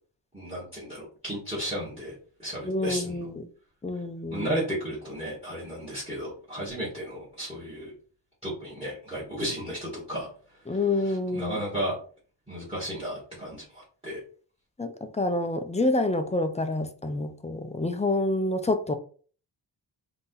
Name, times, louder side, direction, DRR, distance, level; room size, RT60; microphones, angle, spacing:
voice 1, 0.3-3.2 4.3-7.9 8.4-12.0 12.5-14.2, equal, 15° right, 1.7 m, -34 dB
voice 2, 2.6-3.4 3.8-4.5 10.7-11.6 14.8-18.9, left 2 dB, 15° left, 0.4 m, -28 dB
3.8 x 2.8 x 3.9 m
wide cardioid pair, 145°, 44 cm